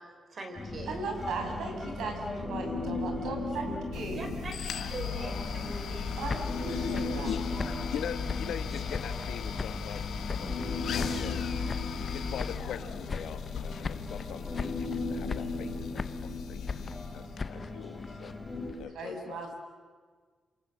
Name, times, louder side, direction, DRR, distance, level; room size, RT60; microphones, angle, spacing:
voice 1, 0.3-1.0 4.1-4.5 4.9-6.1, right 2 dB, 35° right, 5 dB, 4.5 m, -42 dB
Human voice, 0.5-18.7, left 2 dB, 5° left, 4.5 m, -37 dB
voice 2, 0.9-4.4 6.1-7.3 18.9-19.6, right 3 dB, 85° right, 3 dB, 6.7 m, -37 dB
sound 1, 3.9-17.4, left 7 dB, 60° left, 1.6 m, -37 dB
sound 2, 6.0-9.3 9.6-10.7 11.0-12.8 13.1-13.6 13.8-14.3 14.5-15.0 15.3-16.3 16.7-18.9, left 4 dB, 25° left, 0.8 m, -39 dB
voice 3, 7.3-11.4 12.1-18.3 18.7-19.5, left 9 dB, 75° left, 9 dB, 1.5 m, -42 dB
28.0 x 27.0 x 7.6 m, 1.5 s
wide cardioid pair, 180°, 0 cm